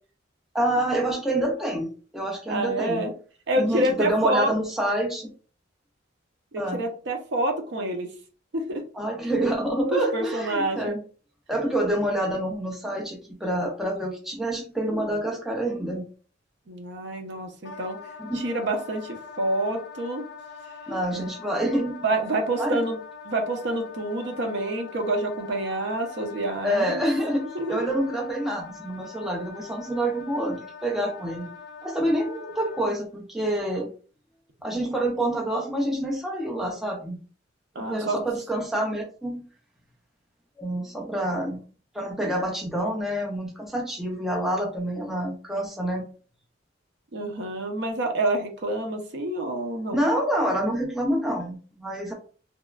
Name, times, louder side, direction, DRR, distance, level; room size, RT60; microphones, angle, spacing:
voice 1, 0.5-3.0 3.5-5.3 6.6-6.8 9.0-11.0 11.5-16.1 18.2-18.5 20.9-22.0 22.6-22.8 26.6-30.6 30.8-31.5 31.8-33.9 34.6-37.2 37.8-39.4 40.6-41.6 41.9-46.1 49.9-52.1, right 1 dB, ahead, 0 dB, 0.4 m, -27 dB
voice 2, 2.5-3.1 3.5-4.5 6.5-8.1 8.5-8.8 9.9-11.0 16.7-18.0 18.3-20.2 21.1-21.2 22.0-23.0 23.2-27.0 27.5-27.8 37.7-38.2 47.1-50.0, right 1 dB, 60° right, 4 dB, 0.6 m, -27 dB
Wind instrument woodwind instrument, 17.6-32.9, left 5 dB, 60° left, 0.4 m, -43 dB
2.9 x 2.1 x 2.3 m, 0.40 s
head